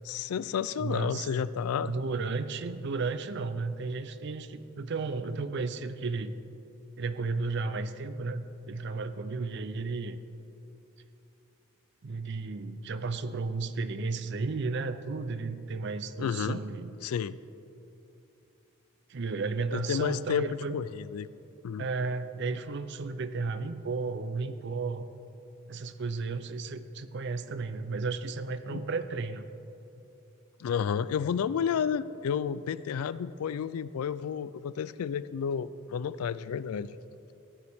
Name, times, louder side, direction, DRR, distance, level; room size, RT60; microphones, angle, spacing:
voice 1, 0.0-1.9 16.2-16.6 17.0-17.4 19.7-21.3 21.6-21.9 28.7-28.8 30.6-36.9, left 7 dB, 85° left, 17 dB, 0.3 m, -31 dB
voice 2, 0.8-1.3 1.8-6.3 7.0-10.2 12.0-16.9 19.1-20.8 21.8-25.1 25.7-29.5 36.7-36.9, right 4 dB, 55° right, 12 dB, 0.5 m, -33 dB
15.0 x 9.6 x 3.5 m, 2.9 s
head